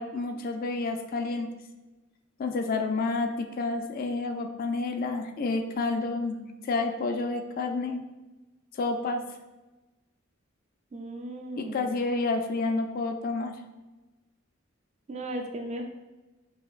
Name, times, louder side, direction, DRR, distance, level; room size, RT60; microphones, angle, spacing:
voice 1, 0.0-1.5 2.4-8.0 8.7-9.2 11.6-13.5, left 3 dB, 45° left, 5 dB, 0.3 m, -29 dB
voice 2, 10.9-11.9 15.1-15.8, right 1 dB, 35° right, 4 dB, 0.4 m, -36 dB
4.9 x 2.7 x 2.4 m, 1.1 s
head